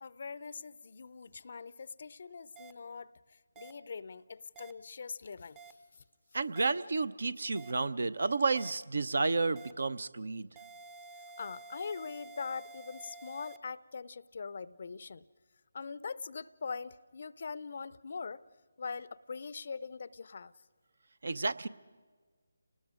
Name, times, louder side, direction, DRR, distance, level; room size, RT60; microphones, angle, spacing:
voice 1, 0.0-5.8 11.4-15.3 15.7-18.4 18.8-20.5, left 5 dB, 55° left, 19 dB, 0.5 m, -42 dB
sound 1, 2.6-2.7 3.6-3.7 4.6-4.7 5.6-5.7 6.6-6.7 7.6-7.7 8.6-8.7 9.6-9.7 10.6-13.6, right 3 dB, 15° right, 0.6 m, -50 dB
voice 2, 6.3-10.5 21.2-21.7, right 3 dB, 65° right, 17 dB, 0.7 m, -31 dB
29.5 x 19.5 x 5.0 m, 1.5 s
figure-of-eight pair, 155°, 0 cm